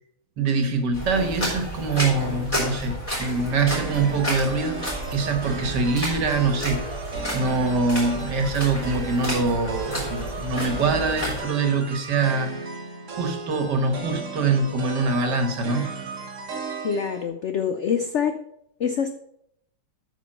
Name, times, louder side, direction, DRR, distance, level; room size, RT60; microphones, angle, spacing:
voice 1, 0.4-6.9 7.3-12.5 13.1-16.0, right 3 dB, 70° right, 6 dB, 1.9 m, -24 dB
sound 1, 0.9-11.4, equal, 15° left, 4.3 m, -31 dB
sound 2, 3.4-17.3, right 4 dB, 45° right, 1.7 m, -36 dB
voice 2, 16.8-18.3 18.8-19.1, left 7 dB, 75° left, 8 dB, 0.6 m, -25 dB
8.9 x 6.0 x 5.5 m, 0.73 s
omnidirectional pair, 1.9 m